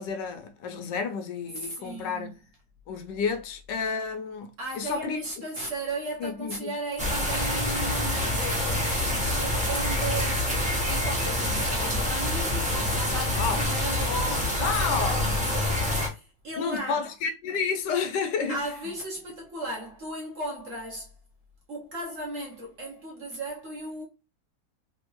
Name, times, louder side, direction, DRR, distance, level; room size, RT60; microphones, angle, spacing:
voice 1, 0.0-2.4 2.9-5.2 6.2-6.7 13.4-13.6 14.6-15.2 16.6-18.6, left 5 dB, 75° left, 1.2 m, -30 dB
voice 2, 1.5-2.3 4.6-17.0 18.5-21.1 21.7-24.0, right 1 dB, 55° right, 0.9 m, -36 dB
sound 1, 7.0-16.1, left 1 dB, 5° right, 0.7 m, -26 dB
3.4 x 2.8 x 3.0 m
omnidirectional pair, 2.1 m